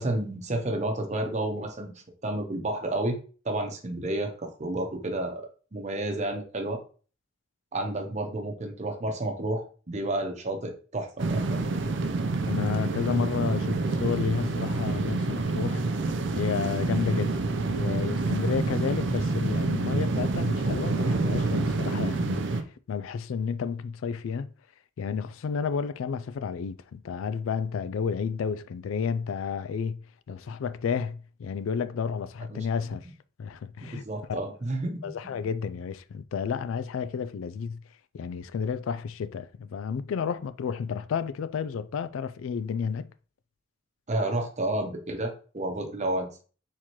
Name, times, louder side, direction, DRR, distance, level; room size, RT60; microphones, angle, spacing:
voice 1, 0.0-1.9 2.2-3.2 3.4-6.8 7.7-11.6 32.5-32.7 33.9-35.5 44.1-46.4, right 1 dB, 35° right, 0.8 m, -31 dB
sound 1, 11.2-22.6, right 3 dB, 60° right, 0.5 m, -27 dB
voice 2, 12.5-15.8 16.3-17.4 17.7-22.4 22.9-24.5 25.0-30.0 30.3-33.1 33.4-34.0 34.3-34.4 35.0-37.8 38.1-43.1, left 6 dB, 85° left, 0.3 m, -31 dB
4.4 x 3.7 x 3.0 m
head